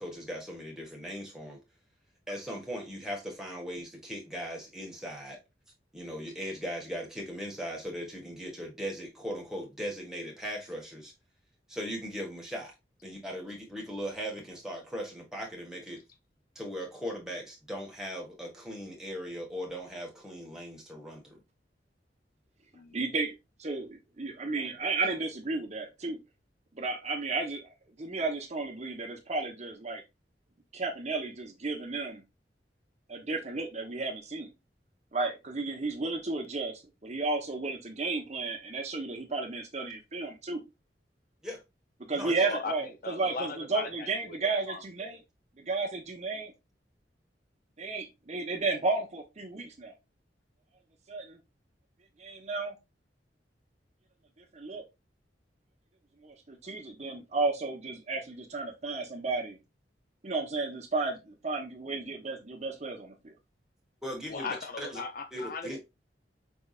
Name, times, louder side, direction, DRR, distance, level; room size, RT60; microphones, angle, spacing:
voice 1, 0.0-1.6 2.3-5.4 5.9-11.1 11.7-12.7 13.0-16.0 16.5-21.4 41.4-41.6 42.1-42.3 64.0-65.0 65.3-65.8, equal, 5° right, 1.4 m, -38 dB
voice 2, 22.9-23.3 23.6-26.2 26.7-27.7 28.0-30.0 30.7-32.2 33.1-34.5 35.1-40.6 42.1-45.2 45.6-46.5 47.8-49.9 51.1-51.4 52.2-52.7 54.4-54.8 56.2-59.6 60.2-63.3, right 3 dB, 40° right, 1.0 m, -33 dB
voice 3, 42.4-45.2 64.3-65.8, left 4 dB, 55° left, 0.5 m, -39 dB
5.3 x 3.4 x 2.4 m
head